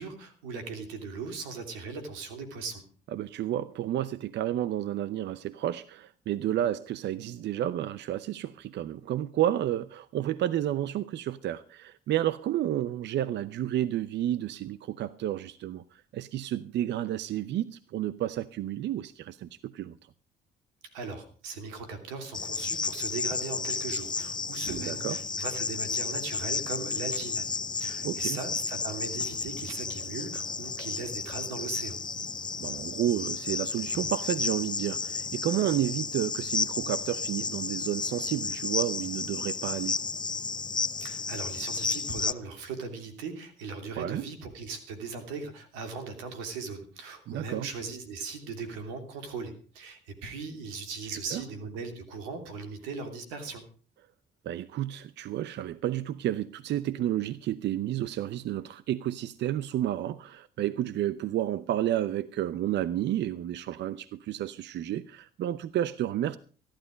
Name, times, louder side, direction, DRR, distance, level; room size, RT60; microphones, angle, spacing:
voice 1, 0.0-2.8 20.9-27.4 27.7-32.0 41.0-53.6, right 4 dB, 85° right, 3.0 m, -39 dB
voice 2, 3.1-20.0 24.7-25.2 28.0-28.4 32.6-40.0 43.9-44.3 47.3-47.7 51.1-51.4 54.4-66.4, right 12 dB, 65° right, 0.7 m, -31 dB
Cricket, 22.3-42.3, left 4 dB, 20° left, 0.7 m, -32 dB
15.0 x 11.5 x 5.1 m
hypercardioid pair, 55°, 19 cm